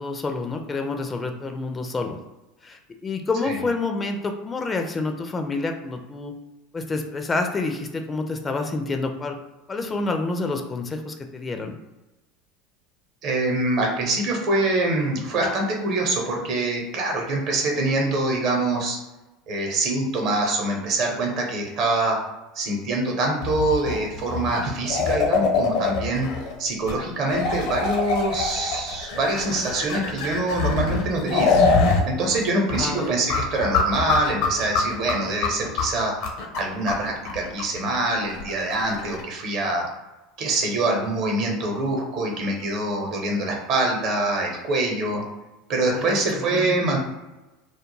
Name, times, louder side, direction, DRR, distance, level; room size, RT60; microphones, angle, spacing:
voice 1, 0.0-2.2 2.6-6.3 6.7-9.4 9.7-11.7 32.7-33.1 45.9-46.8, left 3 dB, 25° left, 5 dB, 0.3 m, -28 dB
voice 2, 13.2-19.0 19.5-22.2 22.5-26.3 26.6-31.6 32.0-36.1 36.5-39.9 40.4-45.2 45.7-47.0, right 2 dB, 55° right, 1 dB, 0.8 m, -24 dB
sound 1, 23.4-26.5 26.9-27.0 27.3-32.0 32.3-32.4 32.7-39.2, left 4 dB, 65° left, 0.6 m, -24 dB
2.2 x 2.2 x 3.1 m, 1.1 s
hypercardioid pair, 80°, 0 cm